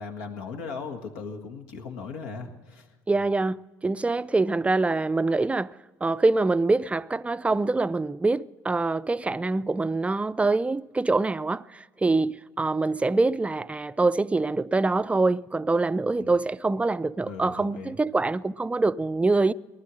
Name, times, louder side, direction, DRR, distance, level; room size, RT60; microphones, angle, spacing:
voice 1, 0.0-2.9 16.1-16.4 17.2-18.0, left 5 dB, 80° left, 1.7 m, -38 dB
voice 2, 3.1-5.7 6.0-19.5, right 3 dB, 15° right, 0.4 m, -25 dB
19.5 x 11.5 x 6.3 m
hypercardioid pair, 70°, 9 cm